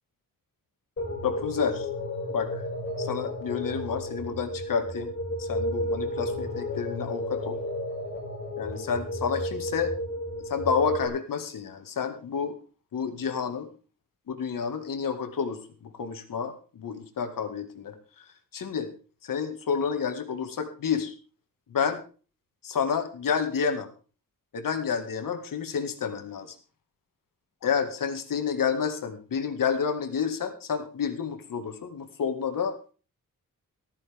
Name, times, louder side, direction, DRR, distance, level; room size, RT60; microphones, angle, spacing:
sound 1, 1.0-11.1, left 1 dB, 35° left, 6.3 m, -32 dB
voice 1, 1.2-1.9 2.3-2.5 3.0-5.1 5.4-7.6 8.6-9.9 10.5-12.6 12.9-13.7 14.3-18.0 18.5-18.9 19.2-21.1 21.7-22.0 22.6-23.9 24.5-26.5 27.6-32.9, left 6 dB, 70° left, 7 dB, 1.9 m, -29 dB
14.0 x 13.5 x 3.5 m, 0.37 s
wide cardioid pair, 155°, 34 cm